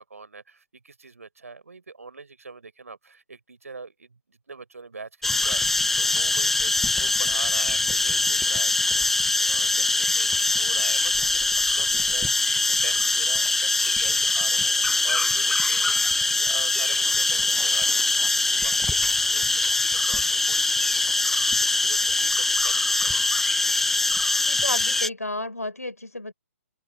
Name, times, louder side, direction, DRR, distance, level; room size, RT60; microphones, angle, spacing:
voice 1, 0.0-18.2 18.5-23.3, right 4 dB, 70° right, 4.5 m, -43 dB
sound 1, 5.2-25.1, left 2 dB, 5° left, 0.7 m, -23 dB
voice 2, 24.5-26.3, left 2 dB, 80° left, 4.6 m, -32 dB
open air
figure-of-eight pair, 135°, 8 cm